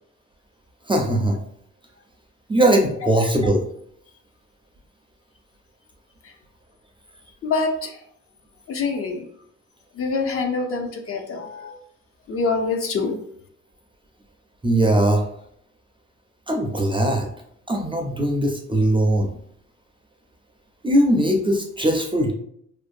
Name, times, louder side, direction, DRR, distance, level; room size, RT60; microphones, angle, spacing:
voice 1, 0.9-1.4 2.5-3.6 14.6-15.2 16.5-17.3 17.7-19.3 20.8-22.3, right 1 dB, 15° right, 1 dB, 0.4 m, -20 dB
voice 2, 7.4-8.0 8.7-9.3 9.9-11.8 12.3-13.2, left 4 dB, 50° left, 3 dB, 0.5 m, -25 dB
2.5 x 2.1 x 2.4 m, 0.69 s
cardioid pair, 90°, 30 cm